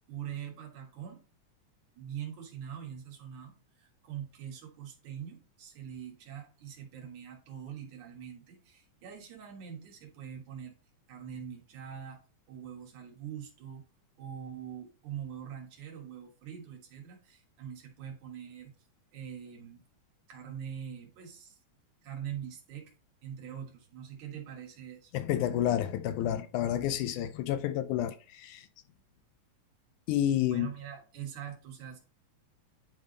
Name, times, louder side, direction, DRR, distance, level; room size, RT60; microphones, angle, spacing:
voice 1, 0.1-1.2 2.0-10.8 11.1-12.2 12.5-13.8 14.2-18.7 19.1-19.8 20.3-21.6 22.0-22.8 23.2-25.1 30.5-32.0, right 9 dB, 75° right, 3.0 m, -43 dB
voice 2, 25.1-28.7 30.1-30.7, left 11 dB, 80° left, 2.1 m, -30 dB
10.5 x 3.5 x 3.9 m
omnidirectional pair, 3.5 m